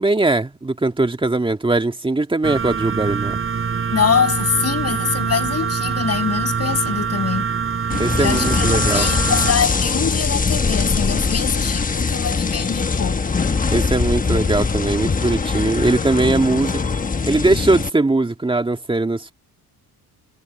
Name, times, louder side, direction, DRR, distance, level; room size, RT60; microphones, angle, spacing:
voice 1, 0.0-3.4 8.0-9.1 13.7-16.8 17.2-19.3, right 2 dB, 15° right, 1.9 m, -20 dB
sound 1, 2.4-9.5, right 6 dB, 35° right, 4.9 m, -24 dB
voice 2, 3.9-7.5 8.2-13.2, left 7 dB, 40° left, 7.5 m, -23 dB
sound 2, 7.9-17.9, left 4 dB, 20° left, 1.1 m, -21 dB
cardioid pair, 140°, 40 cm